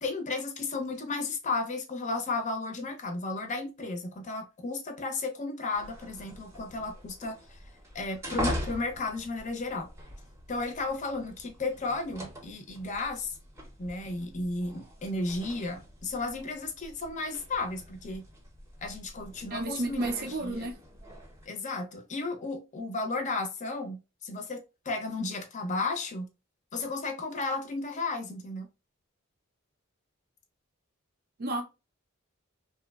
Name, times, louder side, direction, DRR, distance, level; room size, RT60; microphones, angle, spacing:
voice 1, 0.0-7.3 7.9-9.9 10.5-13.3 13.8-18.2 18.8-20.7 21.5-26.3 26.7-28.7, left 3 dB, 35° left, 0.6 m, -34 dB
sound 1, 5.7-21.5, equal, 15° right, 0.7 m, -42 dB
voice 2, 19.5-20.8 31.4-31.6, right 2 dB, 50° right, 0.5 m, -31 dB
2.8 x 2.0 x 2.3 m
head